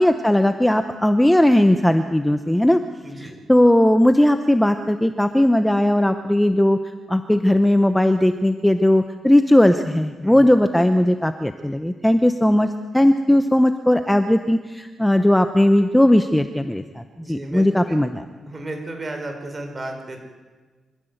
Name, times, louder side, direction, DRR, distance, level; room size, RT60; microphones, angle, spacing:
voice 1, 0.0-2.8 3.2-6.8 7.1-12.7 12.9-18.3, left 1 dB, 5° left, 8 dB, 0.9 m, -17 dB
voice 2, 3.0-3.4 10.2-10.4 17.2-18.0 18.5-20.2, right 2 dB, 25° right, 3 dB, 4.6 m, -33 dB
25.0 x 14.5 x 8.0 m, 1.3 s
cardioid pair, 105°, 0 cm